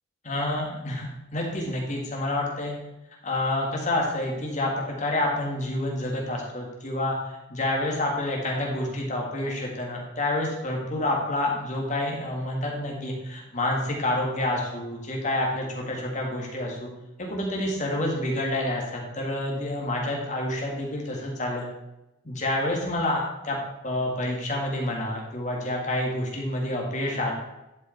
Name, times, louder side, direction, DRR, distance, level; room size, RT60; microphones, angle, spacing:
voice 1, 0.2-2.8 3.2-16.9 17.2-21.7 22.2-23.6 23.8-27.3, left 1 dB, 35° left, -1 dB, 1.9 m, -28 dB
11.0 x 5.0 x 4.5 m, 0.94 s
head